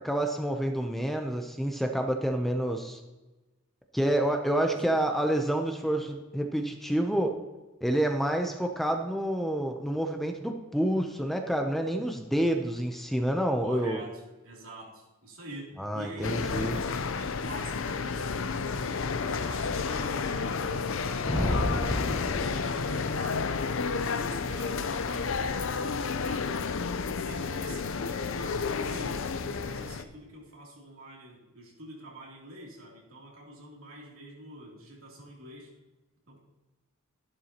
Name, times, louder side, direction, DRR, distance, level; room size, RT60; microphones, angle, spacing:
voice 1, 0.0-3.0 3.9-7.4 7.8-14.0 15.8-16.7, right 1 dB, ahead, 4 dB, 0.6 m, -28 dB
voice 2, 4.6-5.0 13.6-23.5 24.0-26.6 27.2-35.7 36.3-36.4, right 1 dB, 75° right, -3 dB, 3.0 m, -46 dB
sound 1, 16.2-30.0, left 5 dB, 65° left, 0.6 m, -31 dB
Thunder, 21.2-23.4, left 1 dB, 85° left, 3.7 m, -31 dB
12.5 x 11.0 x 2.9 m, 1.1 s
head